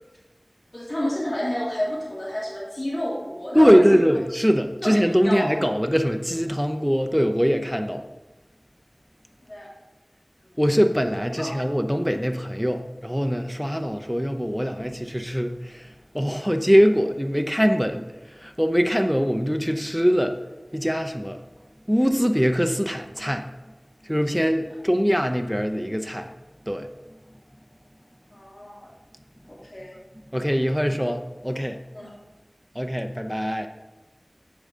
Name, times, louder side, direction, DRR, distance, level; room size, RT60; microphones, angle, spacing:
voice 1, 0.7-4.0 4.8-5.5 9.4-9.7 10.4-10.6 11.4-11.5 28.3-28.9 29.5-30.0 31.9-32.1, left 1 dB, 60° left, 2.8 m, -30 dB
voice 2, 3.5-8.0 10.6-15.9 16.1-18.1 18.4-20.4 20.7-21.4 21.9-23.5 24.1-26.3 26.7-26.9 30.3-31.8 32.8-33.7, equal, ahead, 0.7 m, -22 dB
14.0 x 4.9 x 3.8 m
wide cardioid pair, 45°, 0 cm